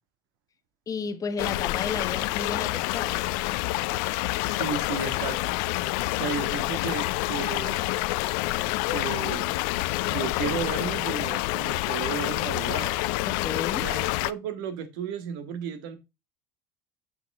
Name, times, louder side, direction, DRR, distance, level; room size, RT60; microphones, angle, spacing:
voice 1, 0.9-3.2 13.3-13.9, left 5 dB, 30° left, 1.4 m, -33 dB
sound 1, 1.4-14.3, left 20 dB, 70° left, 0.5 m, -28 dB
voice 2, 4.5-5.4 6.2-8.0 8.9-9.6 10.1-13.0 13.7-16.0, right 7 dB, 75° right, 1.9 m, -34 dB
7.8 x 5.4 x 3.4 m
hypercardioid pair, 85°, 11 cm